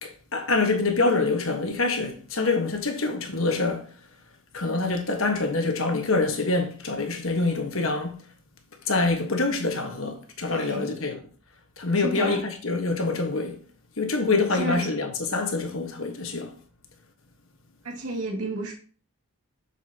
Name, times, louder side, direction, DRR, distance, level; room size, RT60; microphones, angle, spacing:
voice 1, 0.0-3.9 4.5-8.2 8.8-11.2 11.8-13.6 14.0-16.5, left 3 dB, 60° left, 1.4 m, -25 dB
voice 2, 7.3-7.6 10.5-10.9 12.0-12.4 14.5-14.9 17.8-18.7, right 1 dB, 75° right, 2.3 m, -31 dB
7.7 x 7.1 x 2.9 m
head